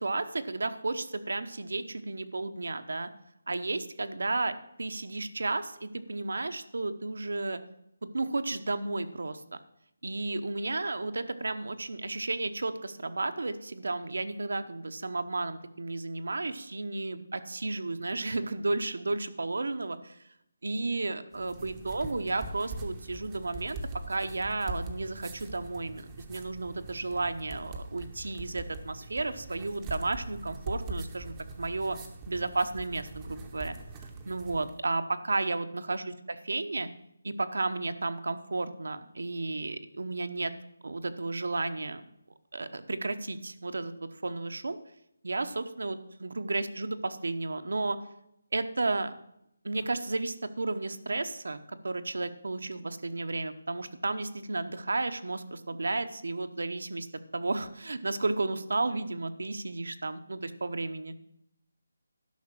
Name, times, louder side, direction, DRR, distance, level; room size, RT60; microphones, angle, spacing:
voice 1, 0.0-3.1 3.5-7.6 8.0-9.6 10.0-20.2 20.6-23.8 24.1-32.0 32.3-36.0 36.4-36.9 37.2-40.5 40.8-42.1 42.5-44.8 45.2-48.0 48.5-49.1 49.6-57.1 57.3-61.1, right 2 dB, 75° right, 10 dB, 0.9 m, -33 dB
sound 1, 21.3-34.8, right 2 dB, 10° right, 0.8 m, -42 dB
11.5 x 5.9 x 6.1 m, 0.78 s
hypercardioid pair, 170°, 0 cm